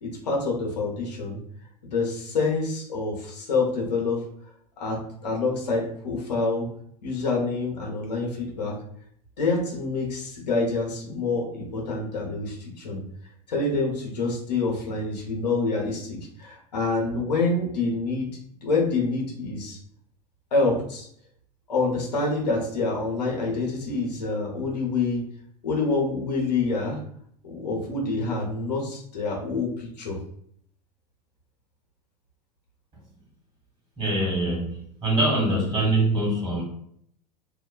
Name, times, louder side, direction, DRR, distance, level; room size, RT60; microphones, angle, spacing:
voice 1, 0.0-1.4 1.8-4.2 4.8-6.7 7.0-8.8 9.4-13.0 13.5-18.3 18.6-19.8 20.5-21.1 21.7-25.3 25.6-27.0 27.4-30.2, left 3 dB, 80° left, -2 dB, 0.8 m, -27 dB
voice 2, 34.0-36.6, right 1 dB, 25° right, -3 dB, 1.4 m, -24 dB
2.5 x 2.2 x 2.2 m, 0.66 s
hypercardioid pair, 90°, 21 cm